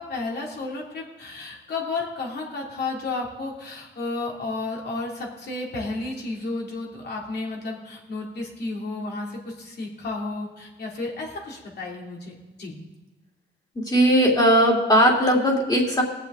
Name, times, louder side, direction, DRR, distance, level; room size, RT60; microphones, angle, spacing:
voice 1, 0.0-12.7, left 3 dB, 55° left, -1 dB, 3.0 m, -32 dB
voice 2, 13.9-16.0, equal, 20° left, -1 dB, 3.0 m, -18 dB
19.0 x 7.4 x 3.8 m, 1.1 s
cardioid pair, 90°, 20 cm